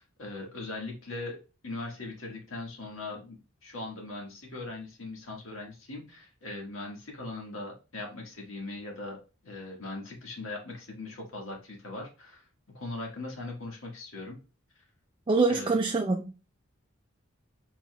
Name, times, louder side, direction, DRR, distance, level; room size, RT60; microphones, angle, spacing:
voice 1, 0.0-1.4 1.6-12.4 12.7-14.4 14.7-14.8 15.5-15.8, left 2 dB, 75° left, 1.6 m, -40 dB
voice 2, 15.3-16.2, right 3 dB, 25° right, 0.4 m, -24 dB
4.7 x 4.1 x 2.2 m
head